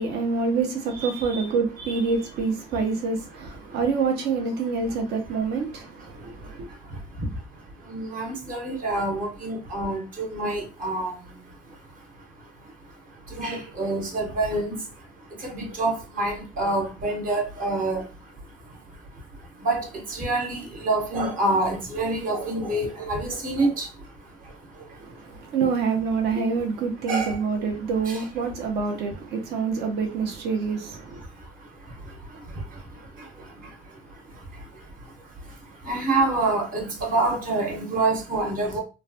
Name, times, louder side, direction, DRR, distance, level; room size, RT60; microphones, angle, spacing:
voice 1, 0.0-6.7 25.0-31.2, right 5 dB, 80° right, 0.7 m, -26 dB
voice 2, 1.0-1.5 1.8-2.0 2.7-2.8 3.6-3.8 5.3-5.4 5.7-25.5 27.1-27.4 28.0-28.5 29.6-29.8 31.0-38.8, right 2 dB, 55° right, 1.1 m, -29 dB
3.1 x 2.2 x 2.7 m
cardioid pair, 110°, 17 cm